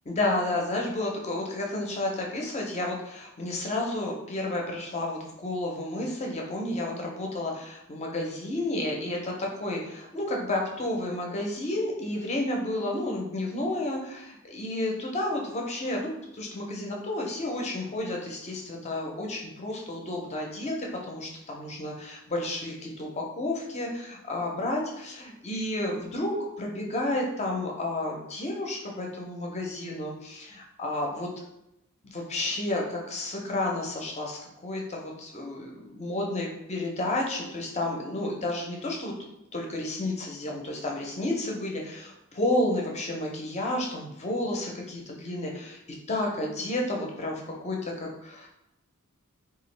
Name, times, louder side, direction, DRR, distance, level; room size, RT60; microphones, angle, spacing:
voice 1, 0.1-31.3 32.0-39.1 39.5-45.8 46.1-48.5, left 1 dB, 30° left, 0 dB, 0.5 m, -31 dB
2.8 x 2.3 x 3.2 m, 0.86 s
head